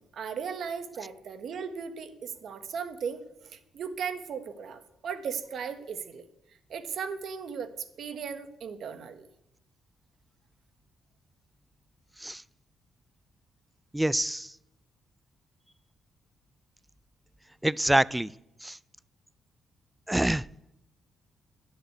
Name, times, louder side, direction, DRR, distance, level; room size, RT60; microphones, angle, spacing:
voice 1, 0.0-6.2 6.7-9.2, right 6 dB, 65° right, 11 dB, 1.3 m, -37 dB
voice 2, 13.9-14.5 17.6-18.3 18.6-18.8 20.1-20.4, right 1 dB, 5° right, 21 dB, 0.4 m, -25 dB
11.0 x 7.9 x 9.3 m, 0.83 s
cardioid pair, 100°, 0 cm